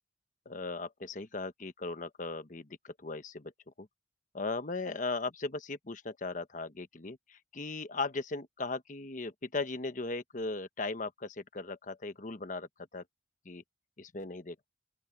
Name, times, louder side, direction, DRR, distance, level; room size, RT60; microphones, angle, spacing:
voice 1, 0.4-3.5 3.8-3.9 4.3-13.0 13.4-13.6 14.0-14.7, left 3 dB, 45° left, 1.2 m, -38 dB
open air
head